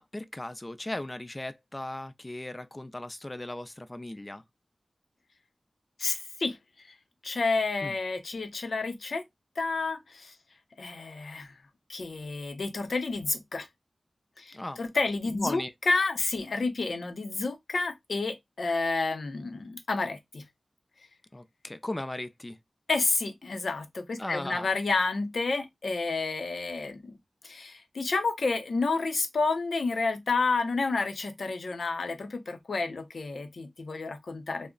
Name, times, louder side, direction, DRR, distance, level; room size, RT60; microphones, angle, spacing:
voice 1, 0.0-4.4 7.8-7.9 14.5-14.8 15.3-15.7 21.3-22.6 24.2-24.7, left 1 dB, 25° left, 0.3 m, -37 dB
voice 2, 6.0-6.6 7.2-9.2 9.6-10.3 10.8-11.5 11.9-13.7 14.4-20.4 22.9-27.1 27.4-34.7, left 3 dB, 80° left, 0.6 m, -30 dB
2.2 x 2.0 x 3.7 m
wide cardioid pair, 65°, 0 cm